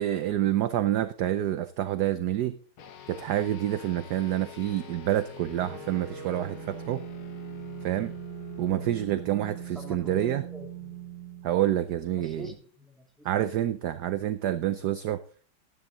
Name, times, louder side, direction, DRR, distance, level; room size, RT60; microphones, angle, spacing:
voice 1, 0.0-2.6 3.1-7.0 7.8-8.1 8.6-10.4 11.4-12.5 13.2-15.2, right 12 dB, 65° right, 12 dB, 1.1 m, -28 dB
sound 1, 2.8-12.5, left 8 dB, 85° left, 2.1 m, -46 dB
sound 2, 5.6-11.7, right 17 dB, 85° right, 1.7 m, -41 dB
voice 2, 9.7-11.0 12.2-13.3, equal, ahead, 1 dB, 2.7 m, -45 dB
13.0 x 11.0 x 3.8 m, 0.38 s
omnidirectional pair, 2.2 m